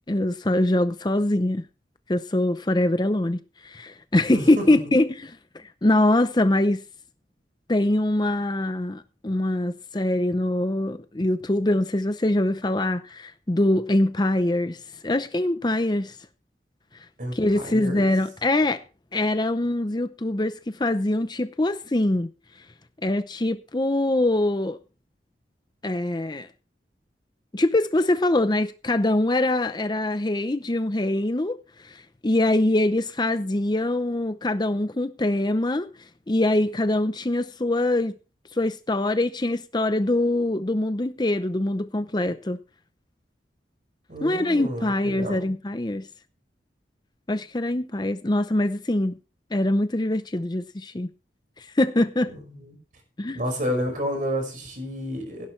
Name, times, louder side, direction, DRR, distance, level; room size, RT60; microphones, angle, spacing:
voice 1, 0.1-1.6 2.1-6.8 7.7-16.2 17.3-18.8 19.1-22.3 23.0-24.8 25.8-26.5 27.5-35.9 36.3-38.1 38.5-42.6 44.2-46.1 47.3-49.1 49.5-51.1 51.6-52.3 53.2-53.4, left 1 dB, 25° left, 0.6 m, -23 dB
voice 2, 4.3-4.8 17.2-18.1 44.1-45.5 52.4-52.8 53.3-55.5, equal, 45° right, 5.5 m, -30 dB
17.0 x 11.5 x 3.2 m
head